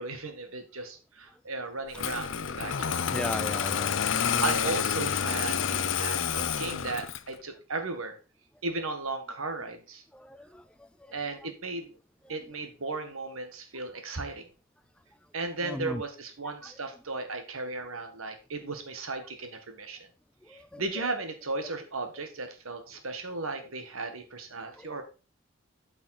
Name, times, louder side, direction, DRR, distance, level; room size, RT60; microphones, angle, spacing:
voice 1, 0.0-3.1 4.4-8.2 8.6-10.0 11.1-12.0 12.3-14.5 15.3-20.1 20.5-25.0, right 3 dB, 90° right, 6 dB, 1.6 m, -35 dB
Engine starting, 2.0-7.3, left 7 dB, 65° left, 0.5 m, -29 dB
voice 2, 3.1-4.0 10.1-11.5 12.3-12.4 15.6-16.0 16.6-16.8 20.4-20.8 24.8-25.0, left 1 dB, 5° left, 11 dB, 0.3 m, -39 dB
8.8 x 5.5 x 4.2 m, 0.34 s
head